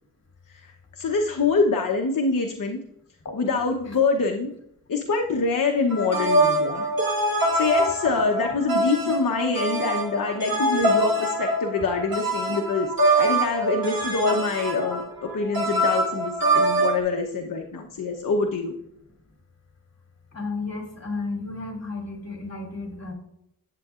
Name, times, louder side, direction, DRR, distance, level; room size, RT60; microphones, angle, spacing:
voice 1, 0.5-2.8 3.3-4.5 4.9-6.8 7.5-18.7, left 4 dB, 60° left, 2 dB, 1.0 m, -25 dB
sound 1, 5.9-17.0, right 2 dB, 65° right, 1.7 m, -24 dB
voice 2, 20.3-23.1, left 3 dB, 45° left, 1 dB, 2.8 m, -32 dB
10.5 x 8.5 x 2.5 m, 0.78 s
cardioid pair, 70°, 37 cm